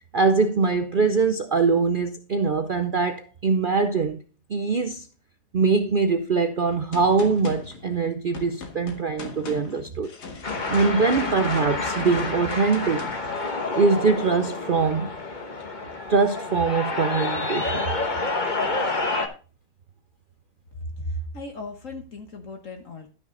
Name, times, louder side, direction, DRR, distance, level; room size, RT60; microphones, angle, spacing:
voice 1, 0.0-4.2 4.5-5.1 5.5-10.1 10.7-13.1 13.7-15.1 16.1-17.9, right 4 dB, 65° right, 0.5 m, -23 dB
Gunshot gunfire, 6.9-13.4, left 4 dB, 90° left, 2.1 m, -40 dB
sound 1, 10.4-19.3, left 3 dB, 30° left, 1.3 m, -28 dB
voice 2, 20.8-23.1, equal, 55° left, 1.5 m, -35 dB
12.5 x 6.2 x 3.8 m
omnidirectional pair, 1.7 m